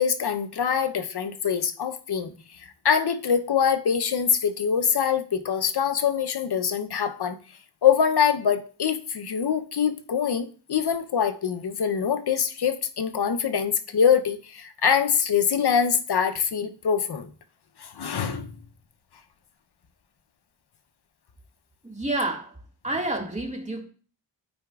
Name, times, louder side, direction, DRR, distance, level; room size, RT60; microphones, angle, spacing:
voice 1, 0.0-7.4 7.8-17.3 17.8-18.6, left 7 dB, 60° left, 0.8 m, -24 dB
voice 2, 21.8-22.5 22.8-23.8, right 2 dB, 15° right, 1.9 m, -28 dB
12.5 x 4.8 x 2.4 m
cardioid pair, 65°, 43 cm